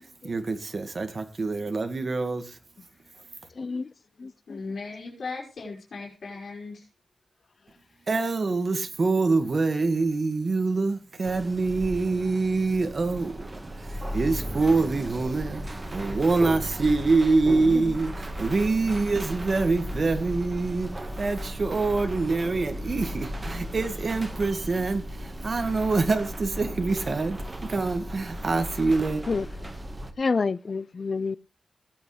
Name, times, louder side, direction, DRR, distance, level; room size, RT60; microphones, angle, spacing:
voice 1, 0.2-2.6 8.1-13.5 13.8-29.2, right 3 dB, 50° right, 1.9 m, -25 dB
voice 2, 3.6-3.9 4.2-4.6 17.7-17.9 29.3-29.5 30.2-31.4, left 4 dB, 50° left, 0.5 m, -28 dB
voice 3, 4.1-6.9, left 4 dB, 85° left, 5.0 m, -38 dB
sound 1, 11.2-30.1, equal, 25° right, 1.6 m, -36 dB
18.5 x 8.5 x 3.3 m
wide cardioid pair, 120°, 0 cm